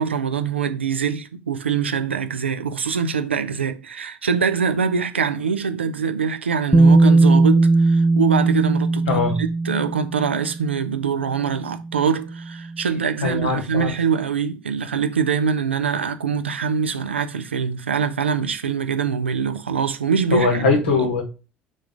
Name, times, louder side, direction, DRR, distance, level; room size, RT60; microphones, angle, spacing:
voice 1, 0.0-20.5 21.0-21.1, right 6 dB, 85° right, 0.6 m, -23 dB
Bass guitar, 6.7-10.7 11.8-11.9, right 3 dB, 10° right, 0.6 m, -17 dB
voice 2, 9.1-9.4 13.2-13.9 20.3-21.2, left 3 dB, 70° left, 1.6 m, -21 dB
5.2 x 3.8 x 5.1 m
figure-of-eight pair, 60°, 6 cm